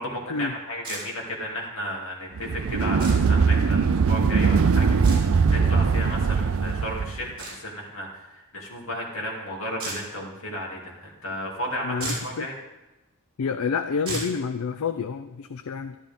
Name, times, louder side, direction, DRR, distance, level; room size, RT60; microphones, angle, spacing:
voice 1, 0.0-12.6, equal, 70° left, -2 dB, 2.6 m, -34 dB
sound 1, 0.8-1.0 3.0-3.2 5.0-5.2 7.4-7.6 9.8-10.0 11.6-11.7 12.0-12.3 14.1-14.3, right 2 dB, 25° right, 4.3 m, -32 dB
sound 2, 2.4-7.2, right 5 dB, 70° right, 0.5 m, -21 dB
voice 2, 11.8-12.5 13.4-16.0, left 5 dB, 85° left, 9 dB, 0.5 m, -29 dB
12.0 x 11.5 x 3.6 m, 1.0 s
head